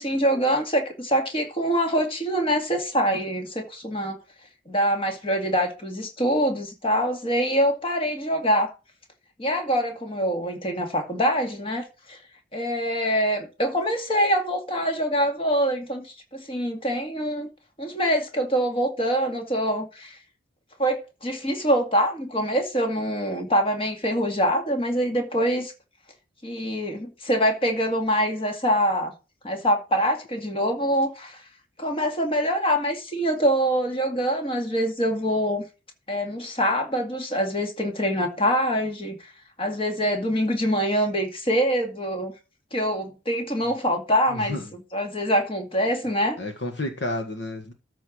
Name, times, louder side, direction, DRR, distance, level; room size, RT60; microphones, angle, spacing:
voice 1, 0.0-4.2 4.7-8.7 9.4-12.2 12.5-16.1 16.3-17.5 17.8-20.2 20.8-25.7 26.4-29.1 29.4-31.4 31.8-35.6 36.1-39.3 39.6-42.3 42.7-46.4, equal, 30° left, 2.1 m, -24 dB
voice 2, 44.3-44.7 46.4-47.7, left 1 dB, 60° left, 1.6 m, -31 dB
13.5 x 4.5 x 6.3 m
head